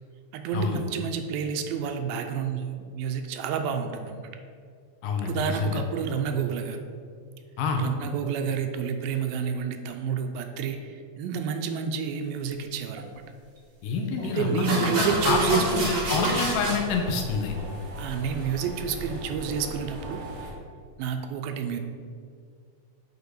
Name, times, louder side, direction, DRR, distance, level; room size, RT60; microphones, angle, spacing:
voice 1, 0.3-4.2 5.3-6.8 7.8-13.0 14.4-16.4 18.0-20.2 21.0-21.8, right 6 dB, 85° right, 6 dB, 2.4 m, -29 dB
voice 2, 5.0-5.8 7.6-7.8 13.8-15.8 16.1-17.5, left 4 dB, 75° left, 2 dB, 2.3 m, -27 dB
sound 1, 13.0-13.1 14.2-14.3 14.6-16.8, right 1 dB, 65° right, 0.8 m, -28 dB
sound 2, 15.2-20.5, equal, 50° right, 1.5 m, -38 dB
8.2 x 4.5 x 6.4 m, 2.1 s
omnidirectional pair, 4.3 m